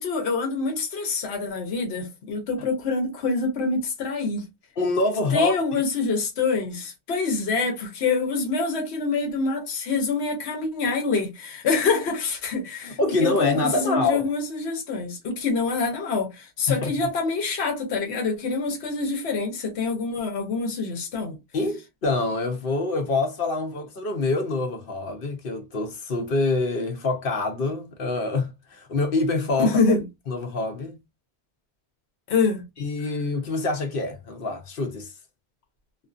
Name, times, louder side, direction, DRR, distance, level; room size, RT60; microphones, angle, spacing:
voice 1, 0.0-4.5 5.3-21.4 29.6-30.0 32.3-32.6, left 4 dB, 80° left, 1.1 m, -26 dB
voice 2, 4.8-5.5 12.8-14.3 16.7-16.9 21.5-29.8 30.3-31.0 32.8-35.1, left 3 dB, 60° left, 0.8 m, -26 dB
2.5 x 2.4 x 2.3 m
omnidirectional pair, 1.1 m